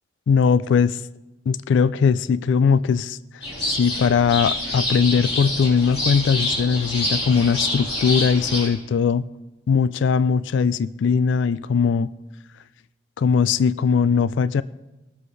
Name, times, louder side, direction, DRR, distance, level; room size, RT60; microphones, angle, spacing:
voice 1, 0.3-1.0 1.5-3.2 3.6-9.2 9.7-12.1 13.2-14.6, left 6 dB, 75° left, 16 dB, 0.3 m, -20 dB
sound 1, 3.4-8.7, left 1 dB, 30° left, 3.9 m, -27 dB
20.5 x 7.6 x 3.2 m, 1.0 s
head